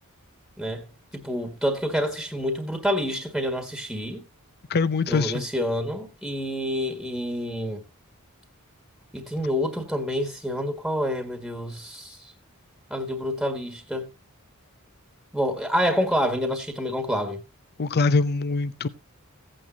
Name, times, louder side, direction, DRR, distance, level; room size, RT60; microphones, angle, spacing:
voice 1, 0.6-0.9 1.1-4.2 5.1-7.8 9.1-12.3 12.9-14.1 15.3-17.4, equal, ahead, 1.6 m, -28 dB
voice 2, 4.7-5.4 17.8-18.9, left 4 dB, 45° left, 0.6 m, -23 dB
16.0 x 8.7 x 2.8 m
head